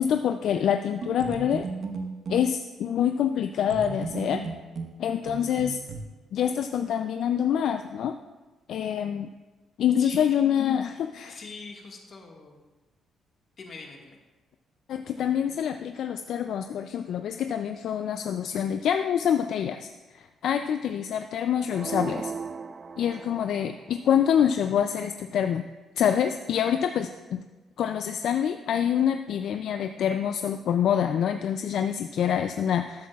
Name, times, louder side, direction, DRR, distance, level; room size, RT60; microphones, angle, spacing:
voice 1, 0.0-1.7 2.3-4.4 5.0-5.8 6.3-8.2 8.7-9.3 9.8-11.4 14.9-22.3 23.0-25.7 26.0-27.4 27.8-33.1, left 9 dB, 70° left, 8 dB, 0.3 m, -26 dB
sound 1, 1.0-2.5 3.7-6.0, right 4 dB, 60° right, 1.1 m, -35 dB
voice 2, 11.3-12.6 13.6-14.2, left 4 dB, 50° left, 1 dB, 1.6 m, -43 dB
sound 2, 21.7-23.8, right 5 dB, 35° right, 0.4 m, -36 dB
13.0 x 8.5 x 2.4 m, 1.2 s
cardioid pair, 90°, 0 cm